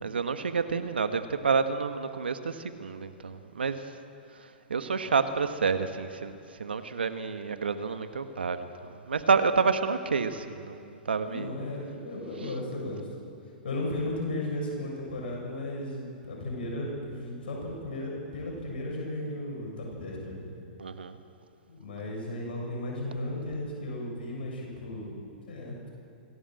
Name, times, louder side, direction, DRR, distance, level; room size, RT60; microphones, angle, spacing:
voice 1, 0.0-3.9 4.7-6.3 6.6-8.7 9.0-11.5 20.8-21.2, right 5 dB, 85° right, 9 dB, 1.4 m, -29 dB
voice 2, 11.2-13.1 13.6-20.5 21.7-25.2 25.5-25.9, left 1 dB, 70° left, -2 dB, 7.4 m, -35 dB
25.5 x 16.5 x 7.8 m, 2.5 s
hypercardioid pair, 115°, 5 cm